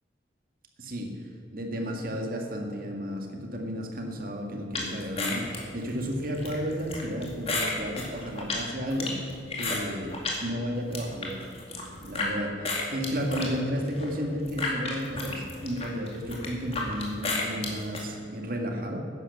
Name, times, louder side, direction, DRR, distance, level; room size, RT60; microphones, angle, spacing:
voice 1, 0.8-1.1 1.5-10.1 10.4-11.3 12.0-19.0, equal, 45° right, 2 dB, 1.8 m, -32 dB
sound 1, 4.7-10.4 10.8-12.3 12.6-18.0, left 3 dB, 30° left, 2.3 m, -33 dB
11.0 x 10.0 x 7.2 m, 2.4 s
head